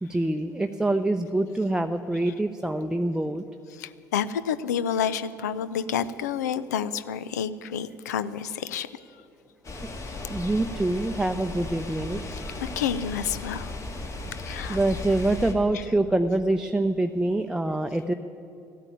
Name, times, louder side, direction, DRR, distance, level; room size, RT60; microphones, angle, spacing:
voice 1, 0.0-3.4 10.3-12.2 14.7-18.1, right 2 dB, 5° right, 6 dB, 0.6 m, -25 dB
voice 2, 3.7-8.9 12.3-13.8 14.4-14.8 15.7-15.8, left 8 dB, 85° left, 15 dB, 0.5 m, -29 dB
sound 1, 9.6-15.5, left 2 dB, 35° left, 2.0 m, -36 dB
14.5 x 9.0 x 9.1 m, 2.6 s
hypercardioid pair, 60°, 9 cm